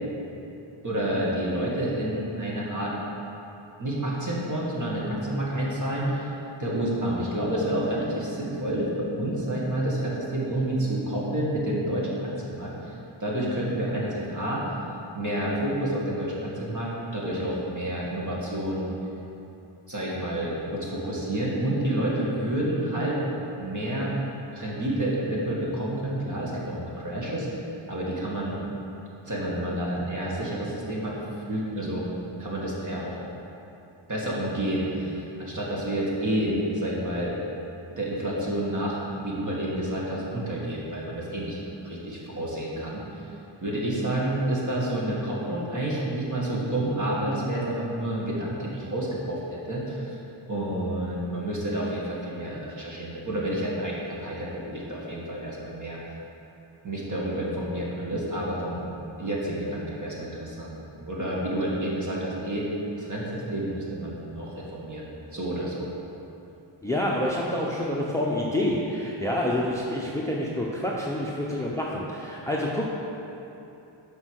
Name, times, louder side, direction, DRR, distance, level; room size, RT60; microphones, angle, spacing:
voice 1, 0.8-2.9 3.8-6.3 6.6-14.6 15.1-18.9 19.9-23.2 23.6-24.1 24.5-27.5 27.9-28.6 29.3-31.2 31.5-32.0 32.4-33.2 34.1-37.4 38.0-39.0 39.2-43.0 43.6-50.2 50.5-56.0 56.8-58.8 59.2-62.7 63.0-65.1 65.3-65.9, right 1 dB, 40° right, -5 dB, 1.9 m, -29 dB
voice 2, 66.8-72.9, left 1 dB, 5° left, -4 dB, 0.7 m, -27 dB
7.9 x 5.5 x 6.4 m, 2.8 s
wide cardioid pair, 125°, 49 cm